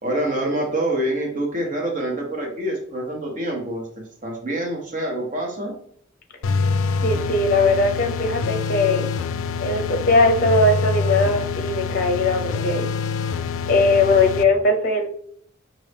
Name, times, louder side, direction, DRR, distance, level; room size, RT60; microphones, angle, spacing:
voice 1, 0.0-3.8 4.2-5.7, right 1 dB, 40° right, 0 dB, 0.9 m, -26 dB
sound 1, 6.4-14.4, left 5 dB, 80° left, 0.3 m, -25 dB
voice 2, 7.0-9.1 9.6-12.9 13.7-15.1, left 2 dB, 45° left, 4 dB, 0.7 m, -19 dB
5.3 x 2.6 x 3.4 m, 0.63 s
head